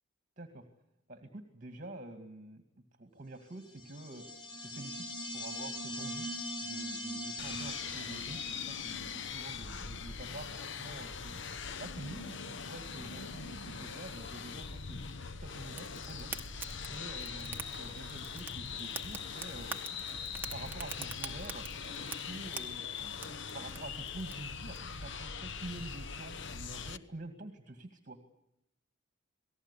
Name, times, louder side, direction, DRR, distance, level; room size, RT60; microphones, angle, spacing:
voice 1, 1.1-2.6 3.0-4.3 4.6-5.0 5.3-6.3 6.6-11.4 11.8-15.0 15.4-16.3 16.9-19.7 20.1-28.2, right 2 dB, 40° right, 7 dB, 2.2 m, -47 dB
sound 1, 3.7-9.1, equal, 25° left, 4.2 m, -41 dB
sound 2, 7.4-27.0, left 6 dB, 65° left, 1.1 m, -42 dB
Fire, 15.7-24.8, right 4 dB, 10° right, 2.0 m, -46 dB
28.0 x 19.0 x 8.4 m, 0.84 s
head